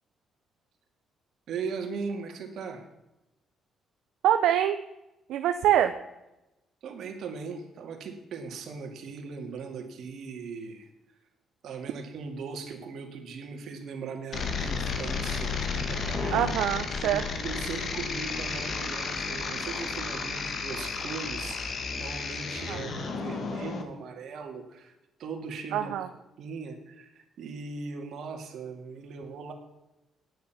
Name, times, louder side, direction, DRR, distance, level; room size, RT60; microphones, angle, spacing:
voice 1, 1.5-2.8 6.8-10.9 11.6-16.5 17.0-24.9 25.2-25.9 26.4-29.5, right 5 dB, 70° right, 4 dB, 2.2 m, -39 dB
voice 2, 4.2-4.8 5.3-5.9 16.3-17.2 22.7-22.8 25.7-26.1, right 11 dB, 85° right, 7 dB, 0.6 m, -24 dB
sound 1, 14.3-23.8, left 4 dB, 55° left, 1.7 m, -32 dB
9.4 x 9.2 x 5.8 m, 0.93 s
cardioid pair, 90°, 0 cm